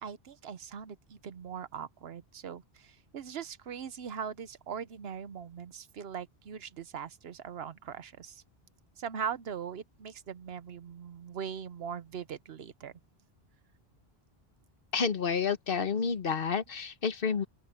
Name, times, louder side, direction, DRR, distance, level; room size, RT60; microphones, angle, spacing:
voice 1, 0.0-8.4 9.0-12.9, right 7 dB, 75° right, 1.1 m, -40 dB
voice 2, 14.9-17.4, left 6 dB, 60° left, 1.5 m, -30 dB
open air
omnidirectional pair, 1.0 m